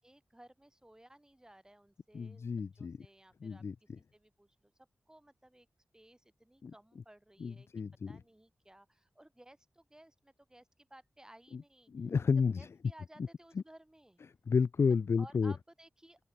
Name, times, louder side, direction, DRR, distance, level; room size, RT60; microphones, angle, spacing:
voice 1, 0.0-5.7 5.9-7.7 8.1-11.9 12.6-14.2 15.2-16.2, right 1 dB, 15° right, 7.6 m, -59 dB
voice 2, 2.1-3.0 3.4-3.7 6.6-6.7 7.4-8.2 11.9-12.7 14.5-15.5, left 5 dB, 60° left, 0.4 m, -31 dB
open air
wide cardioid pair, 85°, 5 cm